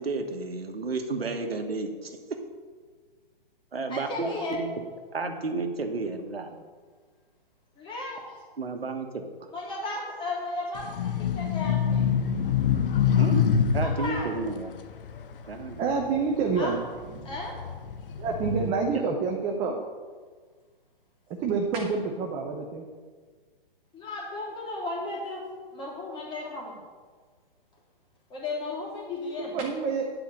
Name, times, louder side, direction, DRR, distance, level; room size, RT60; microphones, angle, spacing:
voice 1, 0.0-2.4 3.7-4.7 5.1-6.5 8.6-9.2 13.2-13.4 13.7-14.7 15.4-15.8 18.9-19.0, right 3 dB, 90° right, 5 dB, 1.5 m, -32 dB
voice 2, 3.9-4.6 7.8-8.4 9.5-12.1 13.8-14.3 16.6-16.7 17.2-17.6 23.9-25.4 25.7-26.8 28.3-29.6, left 2 dB, 15° left, -4 dB, 3.0 m, -35 dB
sound 1, 10.8-16.3 16.8-18.7, left 7 dB, 65° left, 1.0 m, -26 dB
voice 3, 15.7-16.8 17.1-17.3 18.2-19.8 21.4-22.8 29.4-30.0, right 5 dB, 20° right, 2 dB, 0.8 m, -27 dB
9.9 x 4.9 x 8.0 m, 1.5 s
hypercardioid pair, 140°, 29 cm